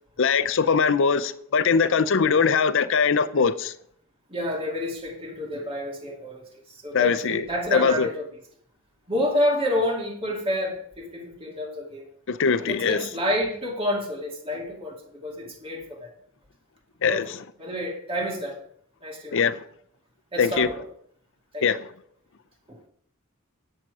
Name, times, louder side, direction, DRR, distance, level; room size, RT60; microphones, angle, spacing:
voice 1, 0.2-3.7 6.9-7.4 7.7-8.1 12.3-13.0 17.0-17.4 19.3-19.6 20.4-20.7 21.6-21.8, left 5 dB, 65° left, 0.6 m, -21 dB
voice 2, 4.3-8.2 9.1-12.1 12.6-16.1 17.1-18.6 19.0-19.4 20.3-20.8 21.5-21.7 22.7-22.8, left 1 dB, 25° right, 2.3 m, -29 dB
10.5 x 7.5 x 4.8 m
head